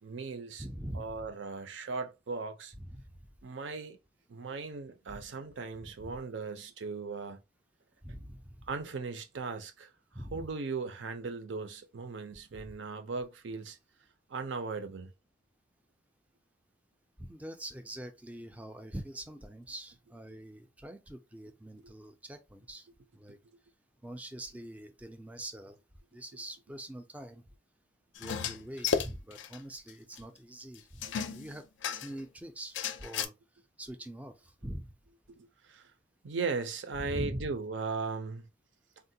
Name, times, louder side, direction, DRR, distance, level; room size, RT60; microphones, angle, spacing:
voice 1, 0.0-0.6 0.9-2.7 3.4-4.0 4.3-7.4 8.7-9.9 10.3-13.8 14.3-15.1 23.3-23.4 35.4-35.9 36.2-38.5, right 4 dB, 70° right, 0.5 m, -38 dB
voice 2, 0.6-1.3 2.8-3.0 5.1-5.2 6.0-6.2 8.0-8.6 10.1-10.5 12.5-12.6 17.2-22.9 23.1-23.4 24.0-25.8 26.1-27.4 28.2-31.0 31.3-31.7 31.9-33.3 33.8-34.9 37.0-37.5, right 1 dB, 10° right, 0.3 m, -43 dB
sound 1, 28.2-29.6 29.9-30.0 30.2-30.3 31.0-32.2 32.7-33.3, left 7 dB, 65° left, 0.4 m, -33 dB
3.6 x 2.1 x 2.7 m
head